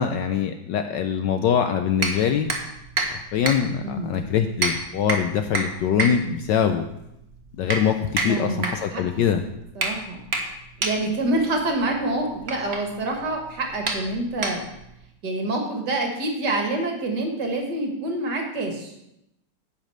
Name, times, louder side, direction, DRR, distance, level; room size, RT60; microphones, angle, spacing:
voice 1, 0.0-2.5 3.3-6.8 7.6-9.4, left 8 dB, 70° left, 7 dB, 1.1 m, -23 dB
sound 1, 2.0-15.0, right 3 dB, 35° right, 1.3 m, -30 dB
voice 2, 3.8-4.2 8.2-9.0 9.8-10.2 10.8-14.6 15.2-18.9, right 2 dB, 55° right, 3 dB, 2.1 m, -27 dB
10.0 x 5.4 x 7.8 m, 0.85 s
omnidirectional pair, 2.3 m